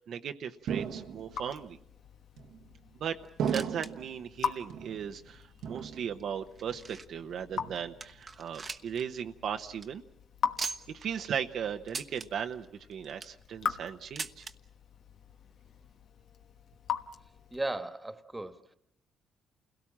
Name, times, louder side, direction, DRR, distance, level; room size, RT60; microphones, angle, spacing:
voice 1, 0.0-1.8 3.0-10.0 10.9-14.4, right 8 dB, 70° right, 6 dB, 0.9 m, -37 dB
Raindrop / Drip, 0.6-17.8, left 7 dB, 70° left, 1.2 m, -42 dB
sound 1, 0.7-1.5 2.4-2.9 3.4-4.2 4.7-5.3 5.6-6.4 6.7-7.1 7.6-8.2, right 7 dB, 85° right, 1.4 m, -37 dB
sound 2, 3.2-3.9 4.2-4.3 5.0-5.1 5.8-7.3 7.7-7.8 8.0-9.0 9.3-9.4 9.7-9.9 10.6-11.1 11.9-12.3 12.9-13.4 14.2-14.5 15.5-15.6 15.8-15.9 16.7-16.8, right 4 dB, 35° right, 1.0 m, -40 dB
voice 2, 17.5-18.7, right 2 dB, 15° right, 9 dB, 1.6 m, -36 dB
28.5 x 17.5 x 7.3 m, 0.75 s
cardioid pair, 90°, 0 cm